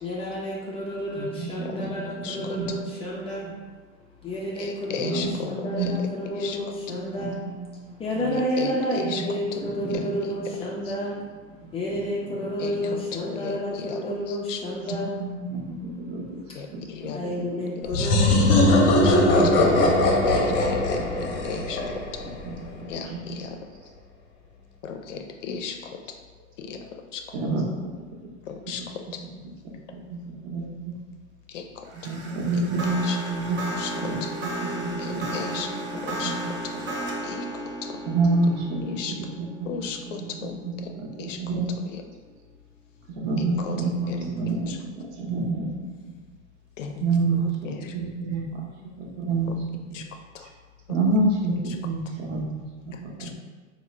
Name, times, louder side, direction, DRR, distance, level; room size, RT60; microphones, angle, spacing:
voice 1, 0.0-3.5 4.2-7.4 8.0-11.2 11.7-15.1 17.1-18.2, equal, 15° left, -4 dB, 0.3 m, -30 dB
voice 2, 1.1-2.7 3.4-3.5 4.9-6.1 6.9-7.5 8.1-8.2 9.0-9.3 9.6-10.5 11.6-12.0 12.4-13.0 14.8-16.2 16.7-17.6 18.3-18.4 19.4-19.9 20.5-21.7 22.2-23.4 27.3-27.9 28.8-29.1 29.9-30.9 32.0-35.4 35.7-36.9 38.1-38.8 39.1-39.5 39.7-41.7 43.1-45.7 46.0-46.1 47.0-48.7 49.0-49.6 49.9-50.0 50.9-53.3, right 3 dB, 60° right, -2 dB, 0.9 m, -29 dB
voice 3, 2.2-2.6 4.6-5.9 6.4-6.6 8.2-9.2 9.9-10.0 10.9-11.0 12.6-14.0 14.3-14.6 16.6-17.2 17.9-18.1 18.8-19.2 20.3-21.8 22.9-23.6 24.8-26.0 26.6-27.2 28.5-29.2 31.5-31.9 33.0-33.2 33.8-34.3 35.0-35.7 35.9-36.3 37.2-37.5 37.9-38.0 38.8-39.2 39.7-40.9 41.2-41.4 41.9-42.0 43.6-43.8 44.1-44.2 44.7-44.8 46.8-47.9 49.5-49.6 49.9-50.0 50.3-50.5 53.2-53.4, left 6 dB, 70° left, 5 dB, 0.5 m, -36 dB
sound 1, 17.9-22.5, left 1 dB, 35° left, 0.7 m, -20 dB
sound 2, 31.9-41.2, right 1 dB, 30° right, 0.6 m, -34 dB
3.7 x 2.1 x 3.1 m, 1.4 s
figure-of-eight pair, 85°, 38 cm